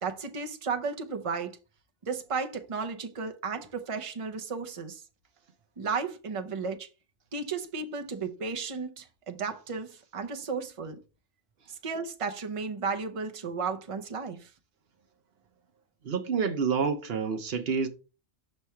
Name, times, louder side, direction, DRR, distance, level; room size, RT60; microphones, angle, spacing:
voice 1, 0.0-1.6 2.0-5.0 5.8-6.9 7.3-11.0 11.7-14.5, right 5 dB, 35° right, 0.7 m, -34 dB
voice 2, 16.0-17.9, right 6 dB, 60° right, 1.0 m, -28 dB
6.0 x 3.2 x 5.6 m
omnidirectional pair, 1.2 m